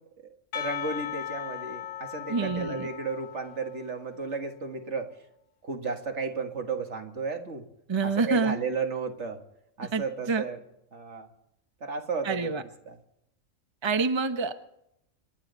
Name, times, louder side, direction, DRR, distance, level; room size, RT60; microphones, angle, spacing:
voice 1, 0.2-5.1 5.6-7.6 8.0-9.4 9.8-10.6 10.9-11.3 11.8-12.5 12.9-13.0, right 4 dB, 60° right, 4 dB, 2.1 m, -33 dB
Percussion, 0.5-4.4, left 10 dB, 70° left, 1.3 m, -38 dB
voice 2, 2.3-2.9 7.9-8.6 9.9-10.4 12.2-12.6 13.8-14.5, right 4 dB, 25° right, 8 dB, 0.8 m, -27 dB
27.5 x 11.0 x 4.1 m, 0.79 s
omnidirectional pair, 1.3 m